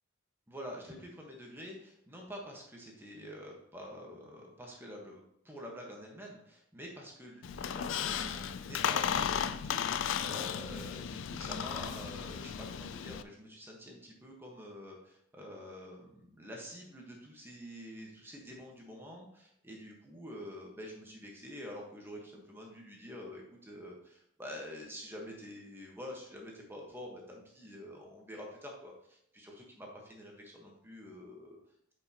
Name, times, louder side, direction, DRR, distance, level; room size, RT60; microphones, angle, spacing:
voice 1, 0.5-31.6, equal, 10° right, -1 dB, 1.3 m, -47 dB
Squeak, 7.4-13.2, left 8 dB, 65° left, 0.4 m, -35 dB
8.9 x 5.3 x 2.9 m, 0.74 s
head